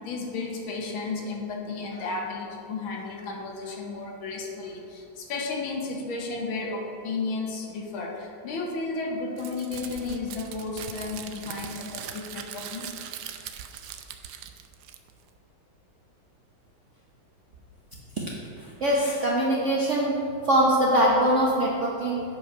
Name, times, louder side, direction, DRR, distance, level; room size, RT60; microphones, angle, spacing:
voice 1, 0.0-12.9, left 3 dB, 70° left, 1 dB, 1.8 m, -33 dB
Crumpling crinkling, 9.4-15.3, right 9 dB, 90° right, 0.9 m, -40 dB
voice 2, 18.6-22.2, right 1 dB, 55° right, -4 dB, 0.8 m, -23 dB
8.0 x 5.6 x 5.0 m, 2.6 s
omnidirectional pair, 2.4 m